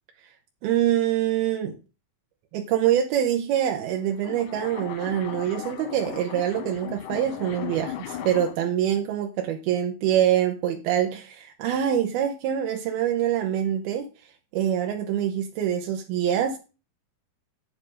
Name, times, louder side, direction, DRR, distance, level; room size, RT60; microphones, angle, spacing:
voice 1, 0.6-1.8 2.5-14.1 14.5-16.6, right 10 dB, 90° right, 2.9 m, -25 dB
sound 1, 3.8-8.7, left 10 dB, 70° left, 2.3 m, -37 dB
8.5 x 7.2 x 5.1 m
omnidirectional pair, 4.4 m